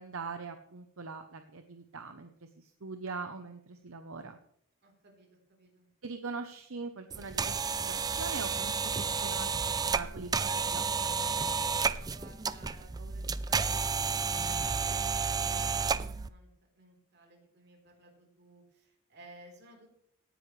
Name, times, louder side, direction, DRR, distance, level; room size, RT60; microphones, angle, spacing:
voice 1, 0.0-4.4 6.0-11.2, right 4 dB, 75° right, 7 dB, 0.9 m, -42 dB
voice 2, 4.8-5.9 11.8-15.9 16.2-19.9, right 1 dB, 55° right, 0 dB, 4.0 m, -57 dB
sound 1, 7.1-16.3, right 5 dB, 20° right, 0.4 m, -31 dB
18.0 x 10.0 x 3.3 m, 0.73 s
head